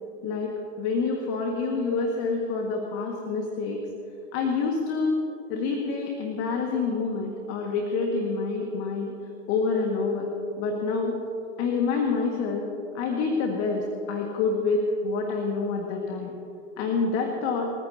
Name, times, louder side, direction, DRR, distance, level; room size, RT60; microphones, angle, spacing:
voice 1, 0.2-3.8 4.3-5.2 5.5-9.1 9.5-10.3 10.6-11.1 11.6-12.6 12.9-16.3 16.8-17.7, left 4 dB, 40° left, 2 dB, 1.8 m, -27 dB
28.5 x 15.0 x 2.8 m, 2.9 s
figure-of-eight pair, 95°, 37 cm